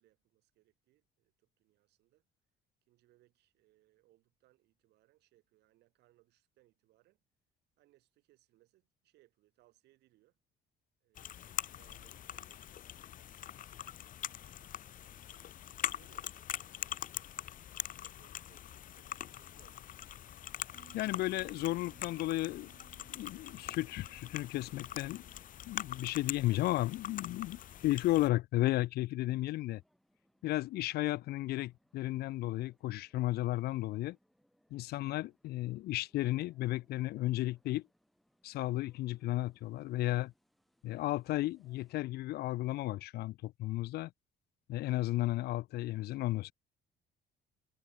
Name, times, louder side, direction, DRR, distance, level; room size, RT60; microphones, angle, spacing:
voice 1, 0.0-2.2 2.9-7.2 7.8-10.4 11.0-13.0 13.7-17.6 18.0-20.1 22.0-22.3, right 17 dB, 80° right, 6.2 m, -71 dB
sound 1, 11.1-28.3, left 11 dB, 55° left, 1.0 m, -43 dB
Bass guitar, 20.7-27.0, right 11 dB, 60° right, 4.7 m, -64 dB
voice 2, 20.9-22.7 23.1-25.2 25.7-29.8 30.4-34.2 34.7-37.9 38.4-40.3 40.8-44.1 44.7-46.5, left 17 dB, 70° left, 0.5 m, -34 dB
sound 2, 29.7-42.0, equal, ahead, 5.6 m, -75 dB
cardioid pair, 110°, 17 cm